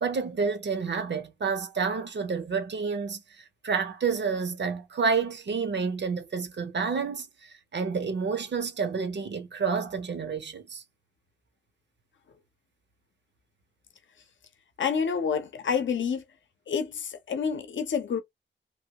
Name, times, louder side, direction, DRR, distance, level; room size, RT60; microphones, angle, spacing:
voice 1, 0.0-10.8, right 5 dB, 65° right, 0.7 m, -29 dB
voice 2, 14.8-16.2 16.7-18.2, left 6 dB, 80° left, 0.6 m, -28 dB
3.0 x 2.2 x 2.8 m
cardioid pair, 50°, 19 cm